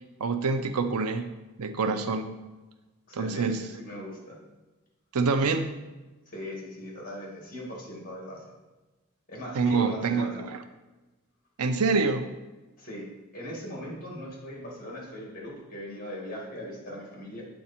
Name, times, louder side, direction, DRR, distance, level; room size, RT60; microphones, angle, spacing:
voice 1, 0.2-1.3 1.6-2.3 3.1-3.6 5.1-5.7 9.5-10.6 11.6-12.3, right 4 dB, 90° right, 9 dB, 0.6 m, -26 dB
voice 2, 3.1-4.4 6.3-8.4 9.3-10.4 12.8-13.1 13.3-17.4, equal, 40° left, -3 dB, 2.2 m, -39 dB
8.4 x 3.9 x 4.3 m, 1.1 s
head